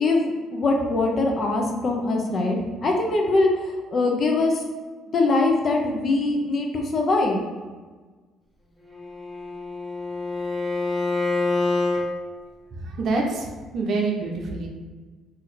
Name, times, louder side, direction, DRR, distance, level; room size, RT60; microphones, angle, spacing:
voice 1, 0.0-4.5 5.1-7.4, left 2 dB, 50° left, 1 dB, 0.7 m, -22 dB
Bowed string instrument, 8.9-12.0, left 3 dB, 10° left, 0.8 m, -26 dB
voice 2, 13.0-13.5 13.7-14.7, right 3 dB, 60° right, 0 dB, 0.7 m, -25 dB
2.8 x 2.5 x 4.1 m, 1.3 s
supercardioid pair, 70°, 0 cm